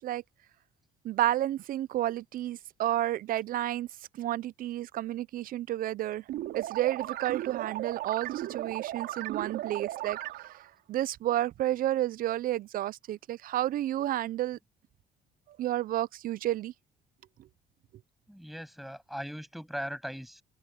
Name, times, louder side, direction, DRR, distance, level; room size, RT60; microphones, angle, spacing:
voice 1, 1.0-3.9 4.1-6.2 6.5-10.2 10.9-14.6 15.6-16.7, right 13 dB, 55° right, 0.5 m, -31 dB
sound 1, 6.3-10.7, right 14 dB, 80° right, 3.6 m, -36 dB
voice 2, 18.3-20.4, equal, ahead, 7.1 m, -39 dB
cardioid pair, 110°, 17 cm